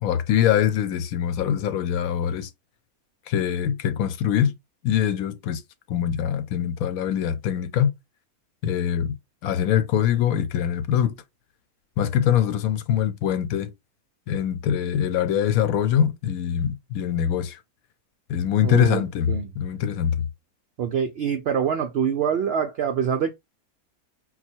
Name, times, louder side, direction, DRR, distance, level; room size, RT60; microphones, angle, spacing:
voice 1, 0.0-2.5 3.3-4.6 4.8-5.6 5.9-7.9 8.6-9.1 9.4-11.2 12.0-13.7 14.3-17.6 18.3-20.3, left 9 dB, 75° left, 1.0 m, -23 dB
voice 2, 18.6-19.5 20.8-23.3, right 7 dB, 75° right, 0.5 m, -25 dB
4.0 x 2.2 x 4.3 m
omnidirectional pair, 1.6 m